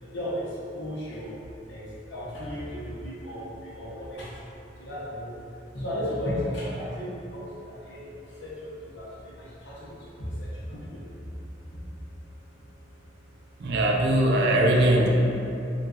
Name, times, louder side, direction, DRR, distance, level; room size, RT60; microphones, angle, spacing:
voice 1, 0.0-1.3 1.7-4.4 4.8-5.4 5.7-11.3 11.7-11.8, equal, 70° left, -8 dB, 0.8 m, -35 dB
voice 2, 13.6-15.1, right 1 dB, 60° right, 0 dB, 0.4 m, -21 dB
3.1 x 2.3 x 2.4 m, 2.7 s
head